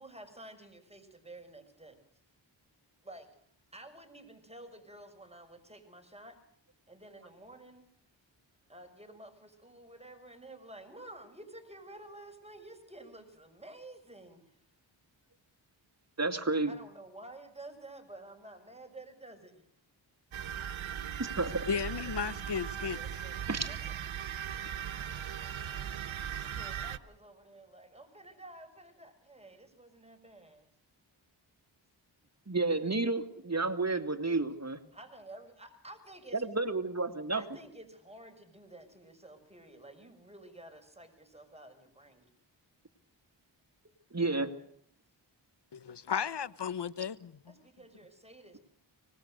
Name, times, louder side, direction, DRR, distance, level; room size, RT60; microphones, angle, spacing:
voice 1, 0.0-2.0 3.0-3.3 3.7-6.4 6.9-7.9 8.7-14.6 16.7-19.7 22.7-24.0 26.4-30.7 34.9-36.5 37.3-42.3 47.5-48.6, right 1 dB, 15° right, 6.3 m, -51 dB
voice 2, 16.2-16.7 21.2-21.7 23.5-23.7 32.5-34.8 36.3-37.4 44.1-44.5, right 3 dB, 35° right, 2.6 m, -31 dB
sound 1, 20.3-27.0, right 9 dB, 80° right, 1.0 m, -38 dB
voice 3, 21.7-23.0 45.7-47.5, left 7 dB, 60° left, 1.0 m, -34 dB
25.0 x 20.0 x 6.5 m
cardioid pair, 45°, 47 cm